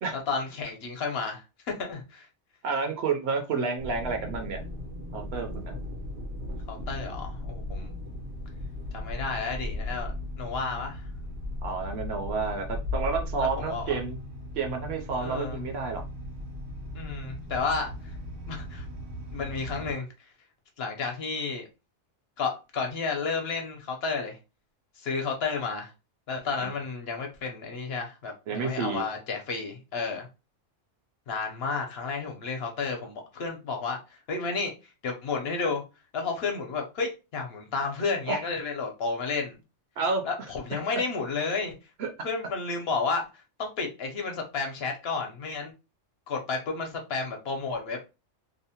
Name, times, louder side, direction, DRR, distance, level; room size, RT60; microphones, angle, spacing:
voice 1, 0.3-1.4 1.8-2.3 6.7-8.0 8.9-10.1 10.4-11.0 13.4-14.0 15.2-15.6 16.9-18.1 18.5-18.9 19.3-20.3 20.8-21.7 22.4-24.4 25.0-25.9 26.3-30.3 31.3-34.7 35.0-35.8 36.1-39.6 40.2-41.7 42.2-43.3 43.6-45.7 46.3-48.2, left 4 dB, 65° left, 0.8 m, -32 dB
voice 2, 2.6-4.6 5.1-5.7 11.6-14.2 14.5-16.0 26.6-26.7 28.5-29.0 38.3-38.4 40.0-40.2 40.7-40.8 42.0-42.1, right 4 dB, 65° right, 0.8 m, -30 dB
sound 1, 3.8-19.9, left 1 dB, 85° right, 1.1 m, -37 dB
2.7 x 2.0 x 2.7 m
omnidirectional pair, 1.2 m